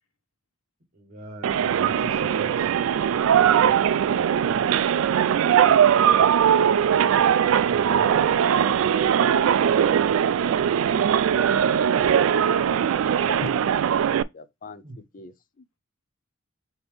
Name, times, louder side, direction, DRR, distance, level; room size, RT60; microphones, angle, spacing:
voice 1, 0.9-2.7 7.6-8.1 14.8-15.0, right 1 dB, 40° right, 1.1 m, -41 dB
sound 1, 1.4-14.2, right 8 dB, 70° right, 0.3 m, -20 dB
voice 2, 8.3-9.0 9.3-11.7 12.5-13.1, left 1 dB, 85° left, 1.1 m, -44 dB
voice 3, 13.3-13.8 14.3-15.8, left 3 dB, 40° left, 0.5 m, -39 dB
5.3 x 2.9 x 3.5 m
head